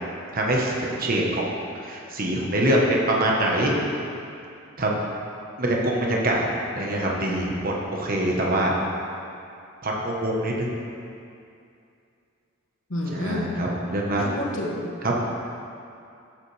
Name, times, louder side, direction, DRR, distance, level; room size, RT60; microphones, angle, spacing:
voice 1, 0.3-1.4 1.8-3.7 4.8-5.0 5.6-6.5 6.7-8.7 9.8-10.7 13.1-14.2 15.0-15.2, right 1 dB, 45° right, -2 dB, 1.2 m, -24 dB
voice 2, 12.9-13.4 14.2-14.9, left 1 dB, 70° left, -1 dB, 1.3 m, -30 dB
13.0 x 7.4 x 3.4 m, 2.5 s
head